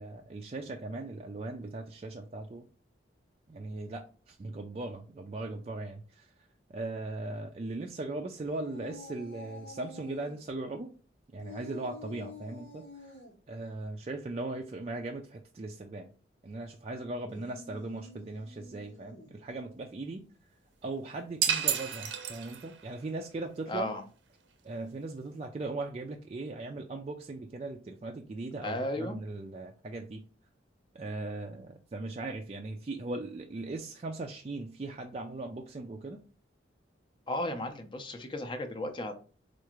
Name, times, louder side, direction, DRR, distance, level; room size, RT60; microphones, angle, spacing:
voice 1, 0.0-2.6 3.5-6.3 6.7-10.9 11.3-12.9 13.5-16.1 16.4-20.2 20.8-23.9 24.6-30.2 30.9-36.2, right 2 dB, 35° right, 2 dB, 0.3 m, -39 dB
sound 1, 8.4-10.4 11.4-13.3 17.2-19.4, left 2 dB, 90° left, 1.1 m, -49 dB
sound 2, 21.4-22.9, right 8 dB, 80° right, 0.6 m, -30 dB
voice 2, 23.7-24.0 28.6-29.2 37.3-39.1, left 1 dB, 25° left, 7 dB, 0.5 m, -34 dB
4.6 x 2.4 x 2.9 m, 0.40 s
head